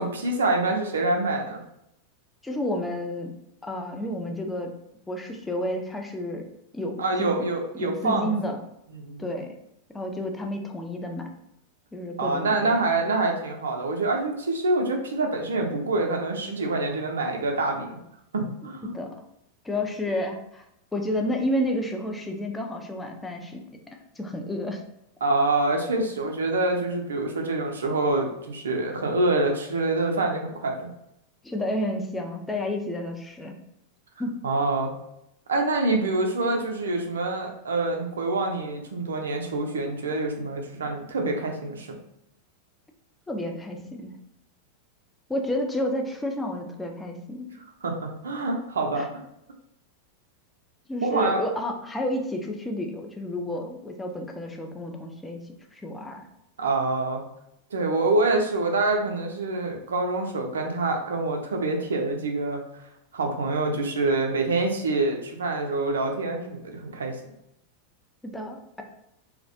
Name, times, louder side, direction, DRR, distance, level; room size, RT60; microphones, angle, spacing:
voice 1, 0.0-1.6 7.0-8.5 8.9-9.3 12.2-18.0 18.3-18.9 25.2-30.9 34.4-34.9 35.5-42.0 47.8-49.1 51.0-51.4 56.6-57.2 57.7-62.6 63.1-67.1, right 2 dB, 70° right, 2 dB, 0.4 m, -26 dB
voice 2, 2.4-3.3 3.6-4.7 5.1-6.5 6.7-7.3 7.8-8.6 9.2-9.5 9.9-11.3 11.9-12.8 18.8-19.1 19.6-20.6 20.9-23.6 24.2-24.8 31.4-33.6 34.2-34.4 43.3-44.1 45.3-47.5 49.0-49.1 50.9-55.4 55.7-56.3 68.2-68.8, left 1 dB, 10° left, 2 dB, 0.4 m, -30 dB
2.3 x 2.1 x 2.6 m, 0.81 s
figure-of-eight pair, 90°, 0 cm